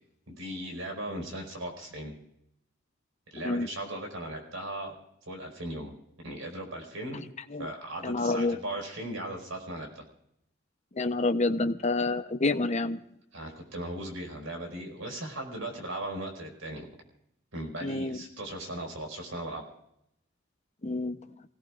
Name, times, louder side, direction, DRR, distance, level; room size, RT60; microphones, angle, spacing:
voice 1, 0.3-2.1 3.3-4.9 5.3-5.9 6.2-7.2 7.6-10.0 13.3-16.9 17.5-19.6, right 1 dB, 85° right, 1 dB, 5.2 m, -38 dB
voice 2, 8.0-8.6 10.9-13.0 17.8-18.2 20.8-21.1, left 2 dB, 35° left, 8 dB, 0.8 m, -28 dB
27.5 x 17.5 x 2.5 m, 0.78 s
head